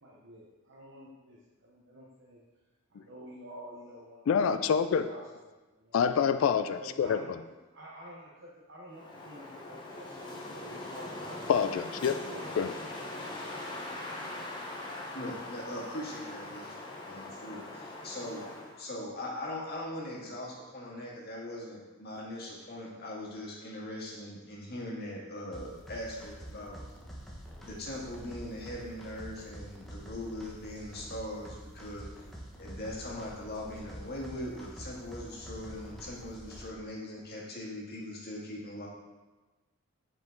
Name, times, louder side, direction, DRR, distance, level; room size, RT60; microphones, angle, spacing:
voice 1, 0.0-2.4 2.9-4.3 4.9-6.0 6.7-7.4 7.7-11.5 12.0-12.4 13.1-13.6, equal, 65° right, -4 dB, 0.9 m, -49 dB
voice 2, 4.3-5.1 5.9-7.4 11.5-12.2 12.6-12.7, left 7 dB, 70° left, 11 dB, 0.3 m, -27 dB
Wind, 8.9-18.8, left 2 dB, 25° left, 1.1 m, -41 dB
voice 3, 15.1-16.7 17.0-18.4 18.8-26.8 27.7-32.2 32.6-38.9, left 1 dB, 50° left, -3 dB, 1.7 m, -40 dB
sound 1, 25.5-36.7, equal, ahead, 1.0 m, -47 dB
7.4 x 4.9 x 3.9 m, 1.2 s
head